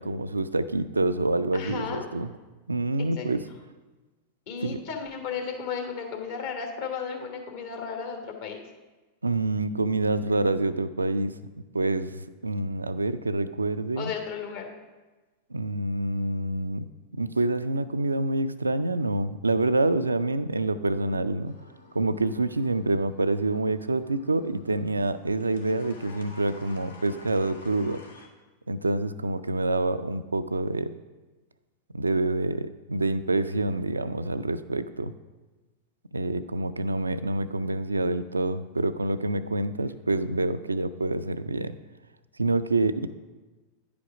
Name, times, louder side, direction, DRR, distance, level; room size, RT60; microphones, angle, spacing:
voice 1, 0.0-2.3 2.7-3.4 4.6-4.8 9.2-11.3 11.7-14.1 15.5-16.8 17.1-21.6 21.9-28.0 28.7-31.0 31.9-35.1 36.1-41.8 42.4-43.1, right 2 dB, 80° right, 12 dB, 0.3 m, -27 dB
voice 2, 1.5-2.1 3.0-3.4 4.5-8.6 13.9-14.7, left 6 dB, 50° left, 3 dB, 1.3 m, -34 dB
sound 1, 21.5-28.3, left 4 dB, 70° left, 1.0 m, -52 dB
9.7 x 5.1 x 4.8 m, 1.2 s
figure-of-eight pair, 90°, 0 cm